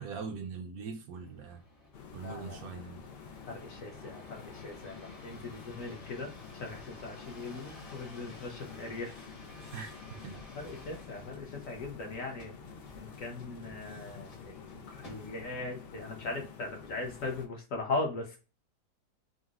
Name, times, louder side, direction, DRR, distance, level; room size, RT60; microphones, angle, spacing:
voice 1, 0.0-1.6 2.1-3.0 9.7-10.5, right 5 dB, 70° right, 1.0 m, -42 dB
sound 1, 1.1-15.7 16.3-16.8, left 2 dB, 30° left, 0.8 m, -53 dB
sound 2, 1.9-17.5, left 6 dB, 85° left, 0.5 m, -49 dB
voice 2, 2.2-2.7 3.5-9.2 10.6-12.5 13.0-18.4, left 3 dB, 60° left, 1.1 m, -39 dB
3.9 x 2.1 x 2.3 m
omnidirectional pair, 1.7 m